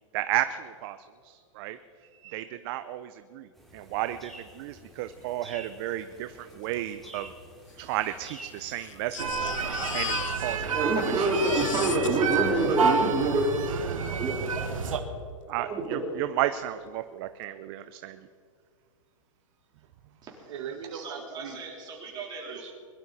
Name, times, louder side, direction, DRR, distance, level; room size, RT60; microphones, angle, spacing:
voice 1, 0.1-1.0 1.2-1.8 2.3-7.3 7.8-10.7 11.0-11.6 15.5-18.2, right 14 dB, 45° right, 11 dB, 0.6 m, -33 dB
voice 2, 2.0-2.4 19.7-20.1 20.5-21.7 22.1-22.7, right 7 dB, 65° right, 5 dB, 1.6 m, -42 dB
sound 1, 3.5-11.6, right 1 dB, ahead, 2.6 m, -50 dB
Crying sobbing, 6.7-6.8 7.0-7.1 7.9-10.8 11.1-13.6 14.5-14.6 14.9-15.0, left 10 dB, 70° left, 1.0 m, -38 dB
sound 2, 9.2-15.0, right 5 dB, 85° right, 1.6 m, -29 dB
voice 3, 10.6-13.5 14.2-14.7 15.5-16.0 20.2-20.4 20.9-22.7, right 3 dB, 25° right, -1 dB, 3.7 m, -28 dB
22.0 x 12.0 x 4.2 m, 2.2 s
hypercardioid pair, 135°, 17 cm